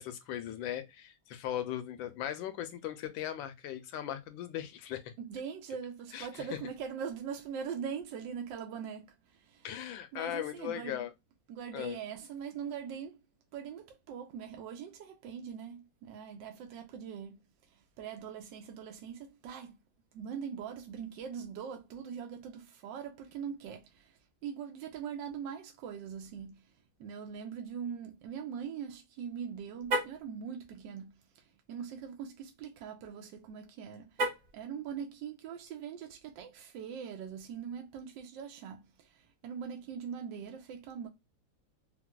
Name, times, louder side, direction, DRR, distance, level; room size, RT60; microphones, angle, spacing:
voice 1, 0.0-5.1 6.1-6.6 9.6-11.1 11.7-12.0, left 11 dB, 80° left, 1.4 m, -38 dB
voice 2, 5.2-9.1 9.5-9.7 10.1-11.1 11.5-13.2 13.5-17.4 18.0-19.8 20.1-24.1 24.4-26.6 27.0-31.1 31.7-34.1 34.5-39.1 39.4-41.1, right 7 dB, 75° right, 1.2 m, -42 dB
Car, 29.8-30.3 34.1-34.6, right 2 dB, 40° right, 1.5 m, -32 dB
4.1 x 2.1 x 2.2 m
omnidirectional pair, 2.1 m